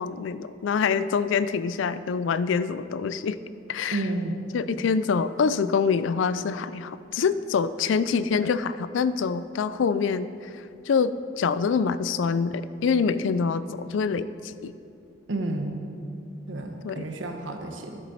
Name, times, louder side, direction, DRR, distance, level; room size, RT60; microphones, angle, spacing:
voice 1, 0.0-3.4 3.7-4.0 4.5-10.3 10.5-14.7 16.8-17.1, left 5 dB, 85° left, 15 dB, 0.4 m, -25 dB
voice 2, 3.9-4.4 15.3-15.8 16.5-18.0, right 2 dB, 80° right, 4 dB, 0.9 m, -31 dB
10.5 x 7.2 x 4.1 m, 2.5 s
head